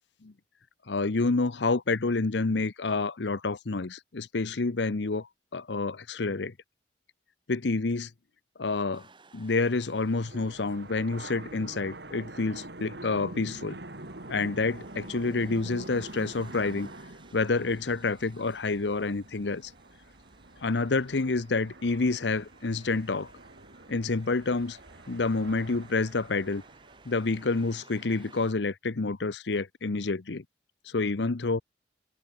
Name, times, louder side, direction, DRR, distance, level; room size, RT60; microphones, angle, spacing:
voice 1, 0.9-5.3 5.5-6.5 7.5-8.1 8.6-9.1 9.3-13.8 14.3-16.9 17.3-19.7 20.6-23.3 23.9-24.8 25.1-26.6 27.1-30.4 30.9-31.6, left 3 dB, 80° left, 0.8 m, -28 dB
sound 1, 8.9-28.5, right 3 dB, 30° right, 2.9 m, -57 dB
sound 2, 10.2-27.7, right 1 dB, 70° right, 3.8 m, -46 dB
open air
head